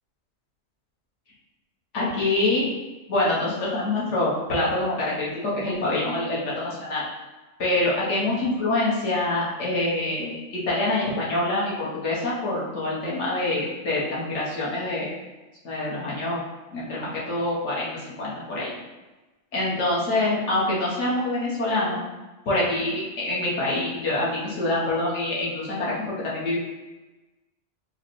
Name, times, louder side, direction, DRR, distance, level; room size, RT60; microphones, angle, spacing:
voice 1, 1.9-2.7 3.1-7.0 7.6-15.1 15.6-16.4 16.7-18.7 19.5-22.0 22.5-26.6, left 2 dB, 65° left, -6 dB, 1.3 m, -25 dB
4.7 x 2.1 x 3.0 m, 1.1 s
omnidirectional pair, 1.3 m